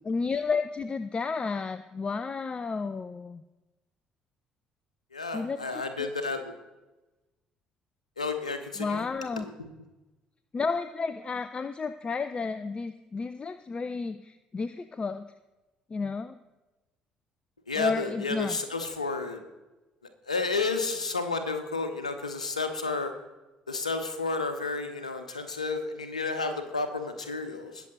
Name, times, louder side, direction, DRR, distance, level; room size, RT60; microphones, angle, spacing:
voice 1, 0.0-3.4 5.3-6.1 8.8-9.5 10.5-15.3 15.9-16.4 17.8-18.6, left 4 dB, 30° left, 12 dB, 0.6 m, -32 dB
voice 2, 5.1-6.5 8.2-9.1 9.4-9.7 17.7-19.4 20.2-23.1 23.7-27.9, left 3 dB, 85° left, 8 dB, 1.0 m, -31 dB
21.0 x 7.0 x 3.8 m, 1.1 s
figure-of-eight pair, 50°, 4 cm